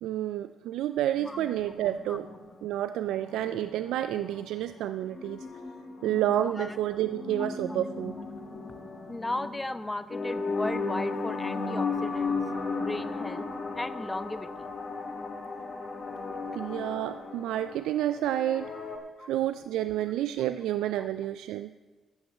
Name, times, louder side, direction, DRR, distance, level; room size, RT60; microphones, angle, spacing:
voice 1, 0.0-2.3 2.6-5.5 6.0-8.1 16.6-18.7 19.2-21.7, right 12 dB, 85° right, 11 dB, 0.3 m, -30 dB
sound 1, 1.2-19.0, left 4 dB, 50° left, 2.2 m, -36 dB
voice 2, 9.1-12.3 12.8-13.5 13.7-14.7 19.2-19.3 21.0-21.1, left 2 dB, 15° left, 13 dB, 0.7 m, -35 dB
13.0 x 6.1 x 7.7 m, 1.3 s
cardioid pair, 90°, 0 cm